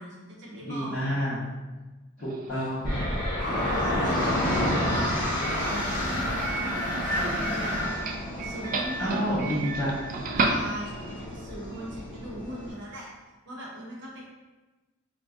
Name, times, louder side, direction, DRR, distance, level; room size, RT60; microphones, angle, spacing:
voice 1, 0.0-1.1 3.4-5.1 5.5-7.8 8.2-9.7 10.4-13.1 13.4-14.2, right 1 dB, 60° right, -4 dB, 0.8 m, -39 dB
voice 2, 0.6-1.4 2.2-2.9 9.0-10.0, equal, 60° left, -12 dB, 0.9 m, -29 dB
Doorbell, 2.2-11.2, right 3 dB, 40° right, 0.3 m, -34 dB
sound 1, 2.8-12.7, left 1 dB, 25° left, 1.0 m, -31 dB
sound 2, 3.4-7.9, left 1 dB, 10° right, 1.0 m, -32 dB
3.8 x 2.6 x 2.3 m, 1.2 s
head